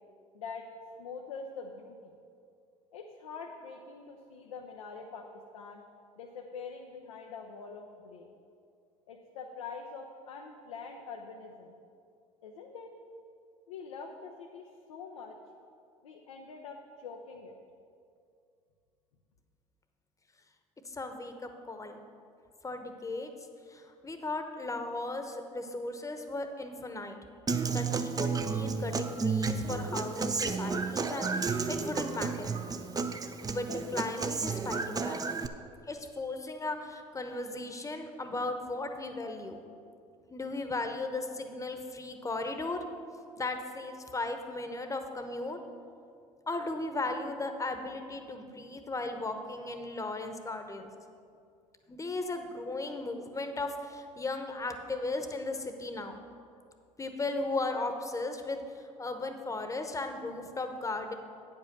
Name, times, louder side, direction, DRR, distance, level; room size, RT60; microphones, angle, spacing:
voice 1, 0.3-0.7 1.0-2.1 2.9-5.3 5.5-5.8 6.2-8.3 9.1-11.8 12.4-12.9 13.7-15.4 16.0-17.6, left 5 dB, 85° left, 1 dB, 0.6 m, -44 dB
voice 2, 20.8-22.0 22.6-23.3 23.7-27.2 27.7-32.5 33.5-35.2 35.9-39.6 40.3-42.8 43.4-45.6 46.5-50.9 51.9-56.2 57.0-61.1, left 2 dB, 20° left, 6 dB, 1.0 m, -36 dB
Human voice / Acoustic guitar, 27.5-35.5, right 4 dB, 20° right, 0.6 m, -32 dB
8.9 x 5.4 x 6.6 m, 2.4 s
hypercardioid pair, 65°, 17 cm